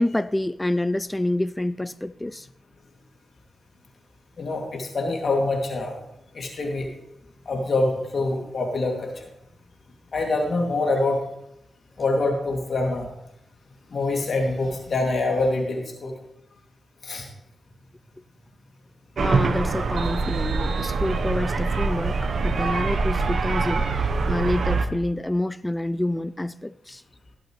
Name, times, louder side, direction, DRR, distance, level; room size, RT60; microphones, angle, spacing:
voice 1, 0.0-2.5 19.2-23.8 24.3-27.0, left 1 dB, 15° left, 0.3 m, -27 dB
voice 2, 4.4-6.0 6.3-6.9 7.5-9.3 10.1-11.2 12.0-13.1 13.9-16.1 17.0-17.3, left 2 dB, 60° left, 2.5 m, -25 dB
sound 1, 19.2-24.9, right 4 dB, 65° right, 0.9 m, -24 dB
17.0 x 7.7 x 3.2 m
cardioid pair, 55°, 0 cm